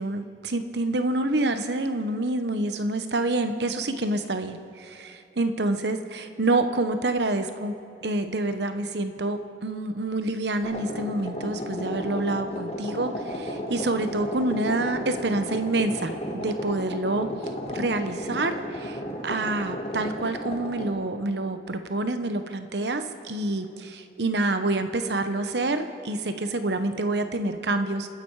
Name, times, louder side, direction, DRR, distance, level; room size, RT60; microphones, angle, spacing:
voice 1, 0.0-7.7 8.0-17.3 17.7-28.1, right 2 dB, 80° right, 9 dB, 1.0 m, -27 dB
sound 1, 10.6-21.0, equal, 35° left, 1.9 m, -34 dB
28.5 x 10.5 x 4.8 m, 2.9 s
head